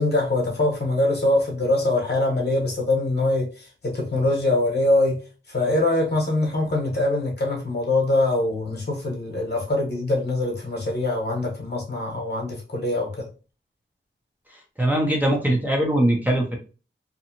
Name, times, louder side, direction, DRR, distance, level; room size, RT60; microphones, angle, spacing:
voice 1, 0.0-5.2 5.5-13.2, left 2 dB, 55° left, 1.1 m, -23 dB
voice 2, 14.8-16.6, right 1 dB, 10° right, 0.7 m, -21 dB
2.7 x 2.3 x 2.8 m
wide cardioid pair, 80°, 20 cm